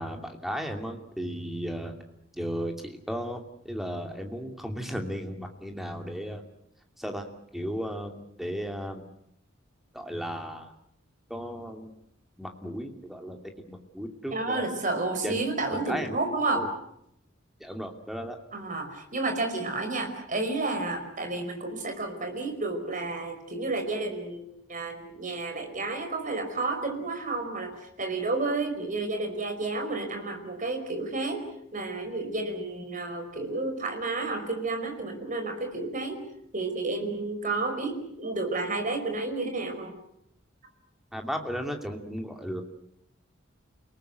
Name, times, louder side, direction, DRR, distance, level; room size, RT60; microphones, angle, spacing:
voice 1, 0.0-2.0 2.4-6.4 7.0-7.3 7.5-9.0 9.9-10.7 11.3-11.9 12.4-13.4 13.7-14.7 15.2-15.4 15.7-16.2 16.5-16.7 17.6-18.4 41.1-42.6, equal, ahead, 4 dB, 2.6 m, -35 dB
voice 2, 14.3-16.7 18.5-24.4 24.7-27.7 28.0-31.4 31.7-36.2 36.5-39.9, right 3 dB, 40° right, 5 dB, 5.3 m, -31 dB
29.5 x 19.0 x 8.2 m, 0.77 s
head